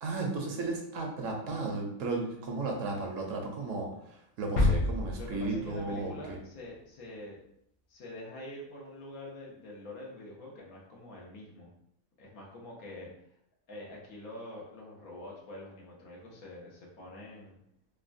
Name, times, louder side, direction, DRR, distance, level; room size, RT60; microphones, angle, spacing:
voice 1, 0.0-3.9 4.4-6.1, right 3 dB, 70° right, 1 dB, 0.9 m, -34 dB
sound 1, 4.6-6.4 6.7-6.8, left 2 dB, 60° left, 0.7 m, -29 dB
voice 2, 5.2-7.4 7.9-11.7 12.2-13.1 13.7-17.6, left 1 dB, 90° left, -3 dB, 1.3 m, -45 dB
3.5 x 2.2 x 2.5 m, 0.72 s
omnidirectional pair, 1.5 m